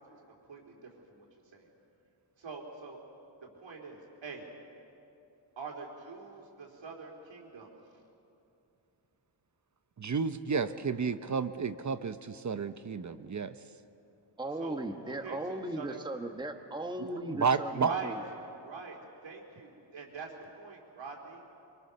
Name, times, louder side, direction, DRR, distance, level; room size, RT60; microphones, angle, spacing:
voice 1, 2.4-3.0 3.4-4.4 5.6-7.7 14.6-14.8 15.0-16.0 17.0-17.2 17.8-18.1 18.6-19.0 19.2-20.3 20.6-21.4, right 5 dB, 75° right, 0 dB, 3.9 m, -43 dB
voice 2, 10.0-13.5 17.3-17.9, right 5 dB, 40° right, 12 dB, 0.8 m, -31 dB
voice 3, 14.4-18.2, right 1 dB, 10° right, 5 dB, 1.3 m, -37 dB
24.0 x 23.5 x 6.8 m, 2.8 s
cardioid pair, 85°, 46 cm